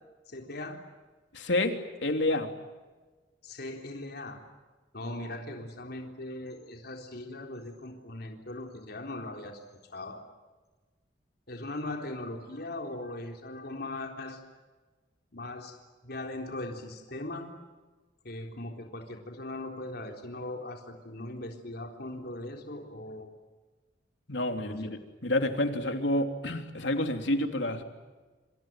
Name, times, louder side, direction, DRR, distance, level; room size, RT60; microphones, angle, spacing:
voice 1, 0.3-0.8 3.4-4.4 4.9-10.2 11.5-14.4 15.3-15.8 16.0-17.6 18.2-23.3 24.5-24.8, left 2 dB, 60° left, 3 dB, 3.8 m, -39 dB
voice 2, 1.3-1.7 2.0-2.5 24.3-27.8, left 1 dB, 80° left, 5 dB, 3.3 m, -29 dB
27.5 x 27.5 x 7.7 m, 1.3 s
head